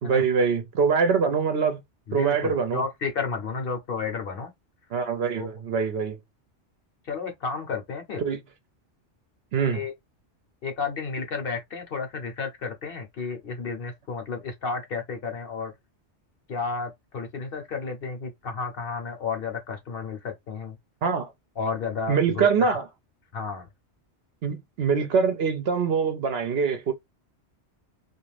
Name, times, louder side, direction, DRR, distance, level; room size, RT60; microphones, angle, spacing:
voice 1, 0.0-1.8 2.1-2.8 4.9-6.2 8.2-8.4 9.5-9.8 21.0-21.3 22.1-22.8 24.4-26.9, right 6 dB, 65° right, 0.7 m, -24 dB
voice 2, 2.1-4.5 5.4-5.5 7.0-8.2 9.6-9.9 10.6-15.7 16.5-20.8 21.6-22.7 23.3-23.7, left 5 dB, 55° left, 0.9 m, -32 dB
2.4 x 2.4 x 3.2 m
omnidirectional pair, 1.2 m